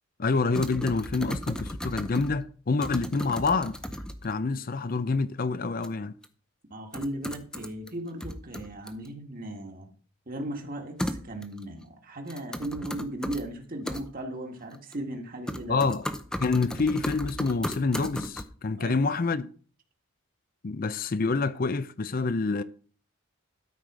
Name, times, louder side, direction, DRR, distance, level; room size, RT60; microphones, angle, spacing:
voice 1, 0.2-3.8 4.2-6.1 15.7-16.1 16.4-19.5 20.6-22.6, left 4 dB, 40° left, 0.5 m, -27 dB
sound 1, 0.5-2.4 2.8-4.3 5.8-5.9 6.2-6.3 6.9-7.9 8.2-9.1 11.0-11.6 12.3-13.4 13.9-14.0 14.7-15.2 15.5-18.4, equal, 5° left, 0.6 m, -35 dB
voice 2, 6.7-9.9 10.3-15.8 18.8-19.0, right 1 dB, 40° right, 1.8 m, -37 dB
12.5 x 5.0 x 6.1 m
head